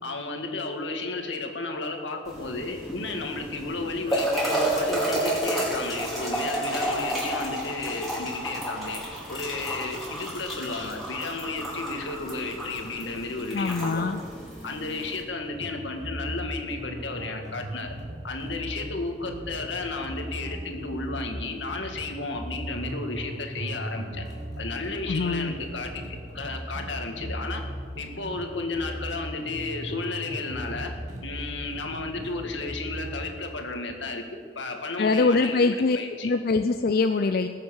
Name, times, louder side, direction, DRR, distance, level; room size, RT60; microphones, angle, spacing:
voice 1, 0.0-9.0 9.3-14.1 14.6-17.9 18.2-24.3 24.6-27.6 28.0-30.9 31.2-34.2 34.6-36.3, left 3 dB, 80° left, 4 dB, 1.8 m, -33 dB
sound 1, 2.3-15.2, right 1 dB, ahead, 4.7 m, -31 dB
voice 2, 13.5-14.2 25.1-25.5 35.0-36.0 36.2-37.5, left 3 dB, 55° left, 8 dB, 0.4 m, -23 dB
sound 2, 15.4-33.3, right 1 dB, 40° right, 2.1 m, -38 dB
20.0 x 7.7 x 6.4 m, 2.2 s
head